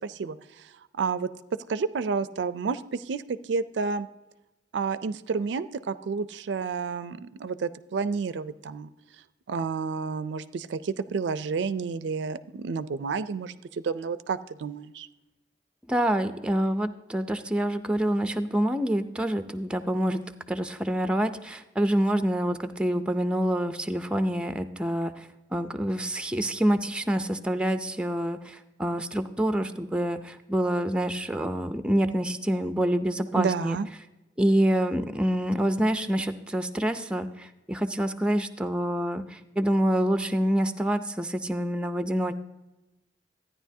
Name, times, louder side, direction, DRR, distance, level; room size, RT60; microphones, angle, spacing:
voice 1, 0.0-4.1 4.7-8.9 9.5-15.1 33.4-33.9, right 5 dB, 75° right, 14 dB, 0.4 m, -30 dB
voice 2, 15.9-33.8 34.4-42.3, right 1 dB, 5° right, 8 dB, 0.4 m, -27 dB
13.5 x 9.8 x 2.7 m, 1.0 s
head